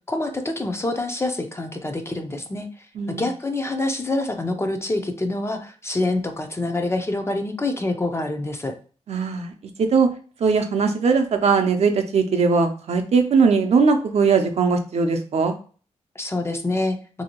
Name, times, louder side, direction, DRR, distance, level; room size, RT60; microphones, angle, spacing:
voice 1, 0.1-2.7 3.1-8.7 16.2-17.0, left 2 dB, 20° left, 5 dB, 0.5 m, -26 dB
voice 2, 9.1-9.5 9.8-10.1 10.4-15.5, right 5 dB, 60° right, 5 dB, 0.5 m, -19 dB
2.9 x 2.7 x 2.8 m, 0.39 s
wide cardioid pair, 105°, 12 cm